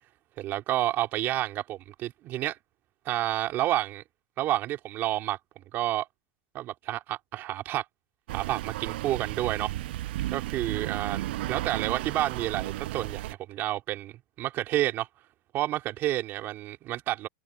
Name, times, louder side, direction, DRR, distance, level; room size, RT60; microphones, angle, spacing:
voice 1, 0.4-2.6 3.1-4.0 4.4-5.4 5.7-6.1 6.5-7.8 8.3-9.7 10.3-15.1 15.5-17.3, right 14 dB, 35° right, 3.7 m, -30 dB
sound 1, 8.3-13.3, right 15 dB, 65° right, 1.0 m, -34 dB
supercardioid pair, 135°, 6 cm